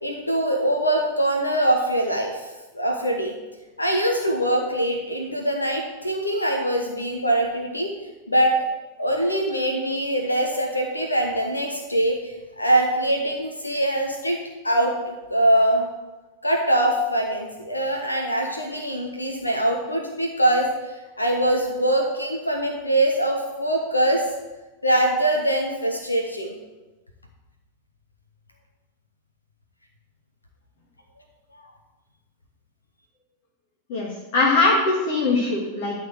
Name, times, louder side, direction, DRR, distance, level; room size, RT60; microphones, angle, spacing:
voice 1, 0.0-3.4 3.8-7.9 8.3-8.5 9.0-14.4 14.6-15.9 16.4-20.7 21.2-24.2 24.8-26.6 31.5-31.6, right 1 dB, 80° left, 2 dB, 1.2 m, -23 dB
voice 2, 33.9-36.0, left 3 dB, 50° left, -2 dB, 1.9 m, -21 dB
12.5 x 4.3 x 7.7 m, 1.1 s
figure-of-eight pair, 90°, 0 cm